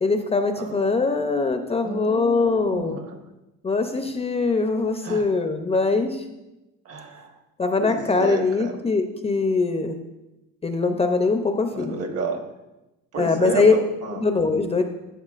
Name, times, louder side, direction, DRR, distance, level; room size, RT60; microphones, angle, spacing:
voice 1, 0.0-3.0 3.6-6.2 7.6-10.0 10.6-12.0 13.2-13.7 14.1-14.8, left 3 dB, 20° left, 6 dB, 0.5 m, -22 dB
voice 2, 1.8-3.1 5.0-5.3 6.8-7.3 7.8-8.8 11.7-12.4 13.1-14.2, right 3 dB, 50° right, 4 dB, 1.3 m, -31 dB
12.5 x 7.0 x 2.4 m, 0.99 s
cardioid pair, 135°, 31 cm